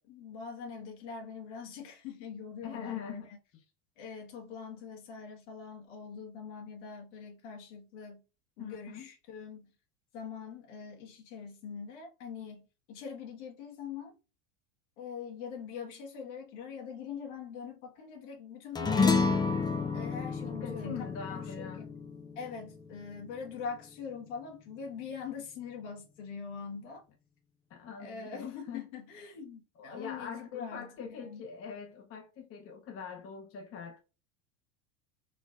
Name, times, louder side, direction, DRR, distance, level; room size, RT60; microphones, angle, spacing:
voice 1, 0.0-3.4 4.0-8.2 8.6-9.7 10.1-14.2 15.0-19.4 19.9-21.9 22.3-27.0 28.0-31.4, left 6 dB, 70° left, 1.5 m, -43 dB
voice 2, 2.6-3.3 8.6-9.1 20.4-21.8 27.7-28.9 29.8-34.0, left 7 dB, 35° left, 0.9 m, -43 dB
sound 1, 18.7-23.4, left 4 dB, 10° left, 0.3 m, -30 dB
4.2 x 3.3 x 2.5 m
hypercardioid pair, 100°, 37 cm